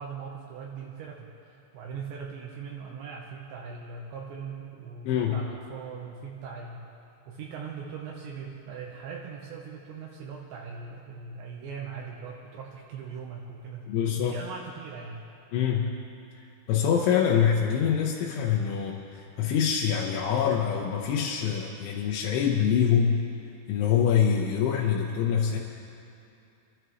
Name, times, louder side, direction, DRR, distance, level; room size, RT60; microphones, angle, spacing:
voice 1, 0.0-6.8 7.3-13.9 14.3-15.2, right 6 dB, 80° right, -2 dB, 3.1 m, -40 dB
voice 2, 5.0-5.4 13.9-14.4 15.5-16.0 16.7-23.2 23.7-25.6, left 8 dB, 85° left, -2 dB, 3.3 m, -25 dB
26.0 x 13.0 x 3.1 m, 2.6 s
omnidirectional pair, 5.3 m